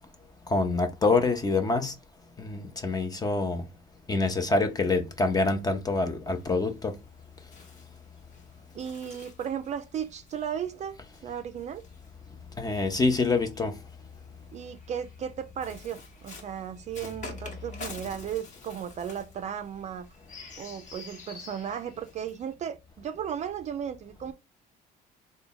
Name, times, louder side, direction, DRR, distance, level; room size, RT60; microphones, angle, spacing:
voice 1, 0.5-1.9 2.4-3.6 4.1-7.0 12.6-13.8, left 3 dB, 20° left, 0.6 m, -26 dB
Bird, 6.3-12.8 13.7-22.5, left 3 dB, 45° left, 1.2 m, -48 dB
voice 2, 8.7-11.0 11.2-11.8 14.5-20.1 20.6-24.3, right 8 dB, 45° right, 0.4 m, -35 dB
3.4 x 2.2 x 3.8 m
cardioid pair, 110°, 17 cm